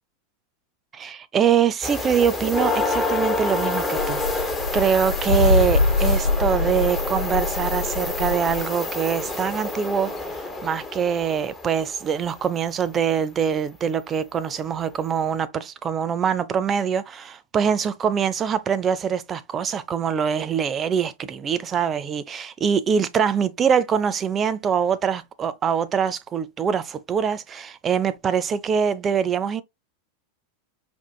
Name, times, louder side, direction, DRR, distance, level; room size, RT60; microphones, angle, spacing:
voice 1, 0.9-29.6, right 7 dB, 30° right, 0.5 m, -24 dB
sound 1, 1.8-12.4 14.5-14.6 15.1-15.3, left 2 dB, 15° left, 1.0 m, -28 dB
sound 2, 4.0-8.6, left 3 dB, 80° left, 0.4 m, -23 dB
5.3 x 2.5 x 2.3 m
figure-of-eight pair, 90°, 0 cm